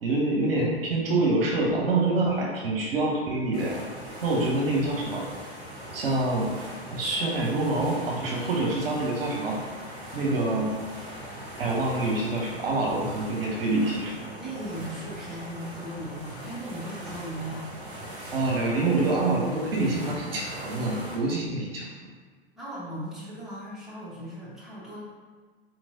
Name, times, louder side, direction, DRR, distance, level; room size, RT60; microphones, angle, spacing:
voice 1, 0.0-3.8 4.2-5.3 5.9-6.5 6.9-9.6 10.1-10.7 11.6-14.2 18.3-21.9, right 2 dB, 65° right, -2 dB, 0.8 m, -26 dB
sound 1, 3.5-21.2, equal, 35° right, 1.5 m, -41 dB
voice 2, 14.4-17.7 22.6-25.0, right 1 dB, ahead, -9 dB, 1.0 m, -38 dB
4.0 x 3.1 x 2.6 m, 1.5 s
figure-of-eight pair, 95°, 32 cm